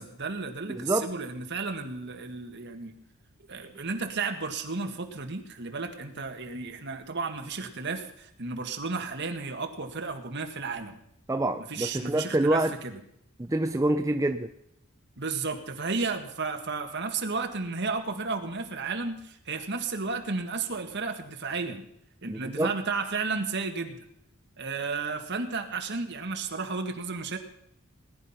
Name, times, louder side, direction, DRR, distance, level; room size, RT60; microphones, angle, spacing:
voice 1, 0.0-2.9 3.5-11.0 11.7-13.0 15.2-21.8 22.2-24.0 24.6-27.4, right 4 dB, 50° right, 5 dB, 1.8 m, -33 dB
voice 2, 0.7-1.1 11.3-12.7 13.4-14.5 22.3-22.7, right 1 dB, 15° right, 7 dB, 0.5 m, -26 dB
19.5 x 10.5 x 5.8 m, 0.74 s
head